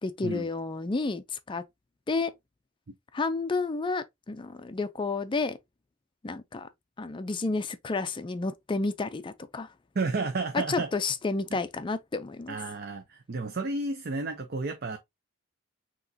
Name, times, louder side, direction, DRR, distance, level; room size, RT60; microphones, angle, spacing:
voice 1, 0.0-1.6 2.1-2.3 3.1-5.6 6.2-6.7 7.0-9.7 10.5-12.6, left 3 dB, 25° left, 0.4 m, -31 dB
voice 2, 10.0-10.9 11.5-11.6 12.5-15.0, right 3 dB, 50° right, 0.6 m, -32 dB
6.1 x 2.9 x 2.7 m
head